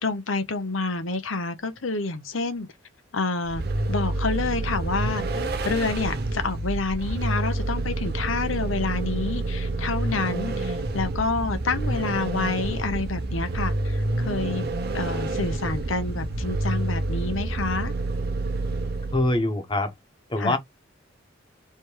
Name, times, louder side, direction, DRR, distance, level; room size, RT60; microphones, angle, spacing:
voice 1, 0.0-2.7 3.1-3.6 3.9-5.2 5.6-17.9 20.4-20.6, left 3 dB, 85° left, 0.9 m, -28 dB
Vehicle, 3.4-19.4, right 2 dB, 55° right, 0.8 m, -28 dB
voice 2, 19.1-19.9 20.3-20.6, left 2 dB, 25° left, 1.2 m, -23 dB
3.4 x 3.2 x 4.5 m
head